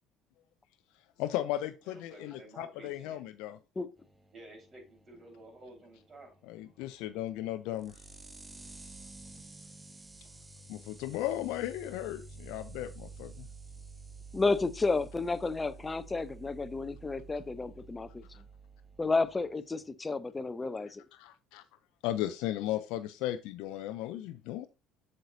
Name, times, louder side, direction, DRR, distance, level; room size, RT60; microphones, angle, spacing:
voice 1, 1.2-3.6 6.5-7.9 10.7-13.5 21.2-21.6 22.0-24.7, left 13 dB, 70° left, 0.4 m, -36 dB
voice 2, 1.8-3.2 4.3-6.4, right 2 dB, 40° right, 4.3 m, -52 dB
sound 1, 4.0-19.9, right 3 dB, 15° right, 1.1 m, -51 dB
voice 3, 14.3-18.3 19.0-21.0, left 3 dB, 20° left, 0.7 m, -31 dB
7.7 x 6.4 x 2.7 m
hypercardioid pair, 60°, 0 cm